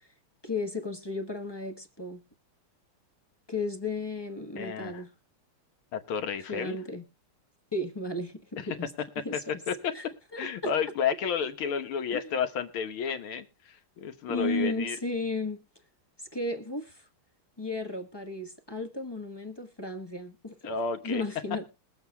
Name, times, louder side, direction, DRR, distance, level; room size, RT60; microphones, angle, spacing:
voice 1, 0.4-2.2 3.5-5.1 6.5-7.0 7.7-8.9 9.2-9.4 9.9-10.0 10.3-10.7 12.1-12.2 14.3-15.6 16.3-17.1 17.6-20.6 21.0-21.6, left 2 dB, 15° left, 4 dB, 0.8 m, -34 dB
voice 2, 4.6-5.0 5.9-6.8 8.6-8.7 9.3-9.4 9.7-9.9 10.4-15.0 20.6-21.2, left 7 dB, 75° left, 8 dB, 2.0 m, -31 dB
21.5 x 8.0 x 2.2 m, 0.33 s
omnidirectional pair, 2.3 m